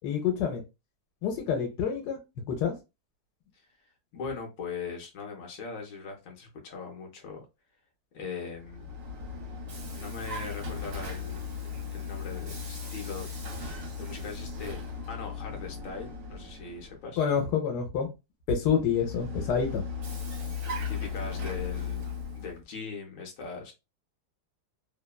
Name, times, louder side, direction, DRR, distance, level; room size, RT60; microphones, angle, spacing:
voice 1, 0.0-0.6 1.2-2.2 2.5-2.7 17.2-18.1 18.5-19.8, left 7 dB, 90° left, 1.2 m, -27 dB
voice 2, 3.8-7.5 8.1-9.0 10.0-11.5 11.9-13.3 13.6-14.8 15.1-17.2 20.9-23.7, left 5 dB, 60° left, 1.0 m, -40 dB
Vehicle, 8.5-17.0 18.7-22.6, left 5 dB, 60° right, 1.2 m, -37 dB
2.8 x 2.1 x 2.2 m
omnidirectional pair, 1.7 m